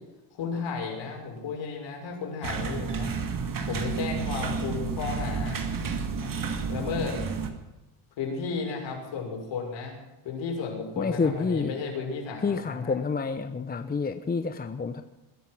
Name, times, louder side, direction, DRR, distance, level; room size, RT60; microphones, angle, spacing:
voice 1, 0.4-3.1 3.7-5.6 6.2-6.4 6.7-7.2 8.2-10.0 10.2-12.9, left 5 dB, 60° left, 1 dB, 6.2 m, -33 dB
sound 1, 2.4-7.5, right 5 dB, 40° right, 2.4 m, -31 dB
voice 2, 11.0-11.7 12.4-15.0, left 4 dB, 20° left, 9 dB, 0.8 m, -28 dB
21.0 x 11.0 x 6.2 m, 1.0 s
cardioid pair, 125°, 50 cm